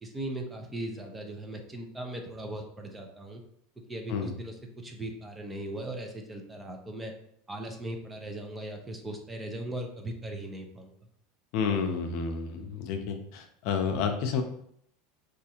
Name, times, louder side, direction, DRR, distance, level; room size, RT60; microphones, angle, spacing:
voice 1, 0.0-3.4 3.9-7.1 7.5-10.9, right 1 dB, 15° right, 2 dB, 0.6 m, -38 dB
voice 2, 11.5-14.4, left 6 dB, 60° left, 5 dB, 0.5 m, -30 dB
4.4 x 2.5 x 2.8 m, 0.70 s
supercardioid pair, 125°, 0 cm